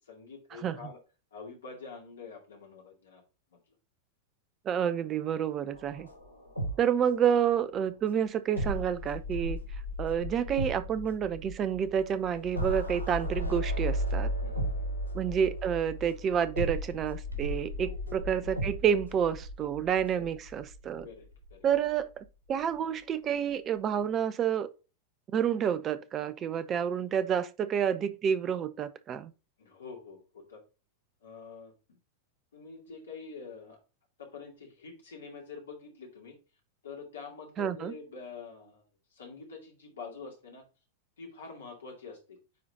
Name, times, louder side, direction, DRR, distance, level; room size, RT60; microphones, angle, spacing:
voice 1, 0.1-1.0 1.3-3.2 3.5-3.6 14.4-15.0 17.8-18.2 20.1-20.3 21.0-21.7 29.6-30.6 31.2-32.0 32.5-33.8 34.2-36.4 36.8-38.8 39.1-40.6 41.2-42.4, left 5 dB, 65° left, 2.4 m, -46 dB
voice 2, 4.7-6.1 6.8-9.6 10.0-14.3 15.1-21.1 21.6-24.7 25.3-29.3 37.6-37.9, right 8 dB, 30° right, 0.6 m, -29 dB
sound 1, 5.7-7.5 7.8-7.9 8.6-21.0 21.3-21.5, equal, 85° right, 2.5 m, -35 dB
9.4 x 4.0 x 2.8 m
figure-of-eight pair, 90°, 0 cm